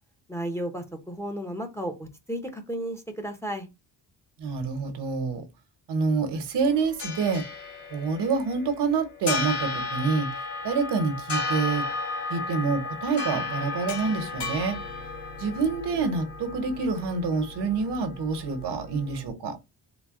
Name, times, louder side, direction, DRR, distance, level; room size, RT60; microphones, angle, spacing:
voice 1, 0.3-3.7, right 1 dB, 5° left, 0.7 m, -33 dB
voice 2, 4.4-5.4 5.9-7.4 7.9-10.3 10.6-11.9 12.3-14.8 15.4-19.6, right 4 dB, 80° right, 1.1 m, -27 dB
sound 1, 6.6-19.3, left 3 dB, 70° left, 2.2 m, -34 dB
3.9 x 2.2 x 3.6 m
wide cardioid pair, 140°, 40 cm